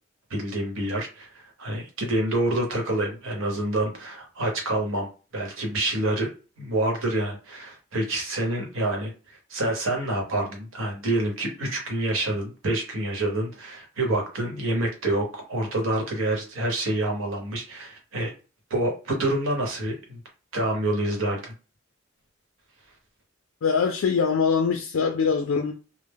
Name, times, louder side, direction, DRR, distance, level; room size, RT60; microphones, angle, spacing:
voice 1, 0.3-6.3 6.6-18.3 18.7-20.2 20.5-21.5, right 1 dB, 85° right, 1.0 m, -27 dB
voice 2, 23.6-25.7, left 5 dB, 85° left, 0.4 m, -23 dB
2.1 x 2.0 x 3.4 m
head